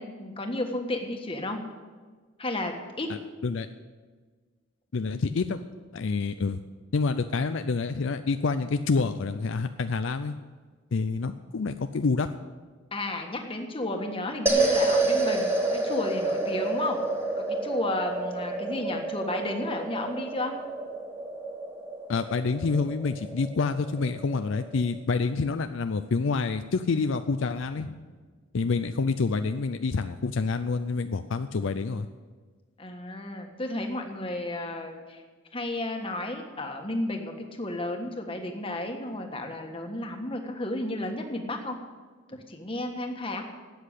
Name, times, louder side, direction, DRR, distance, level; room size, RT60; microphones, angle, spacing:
voice 1, 0.0-1.6 2.4-3.1 12.9-17.0 17.4-20.5 32.8-35.2 35.5-41.8 42.3-43.4, left 1 dB, 25° left, 3 dB, 1.5 m, -32 dB
voice 2, 4.9-5.6 5.9-6.6 6.9-10.3 10.9-12.3 22.1-27.9 28.5-32.1, left 4 dB, 65° left, 9 dB, 0.5 m, -27 dB
sound 1, 14.5-24.9, right 2 dB, 10° right, 1.7 m, -29 dB
12.5 x 8.7 x 8.2 m, 1.5 s
head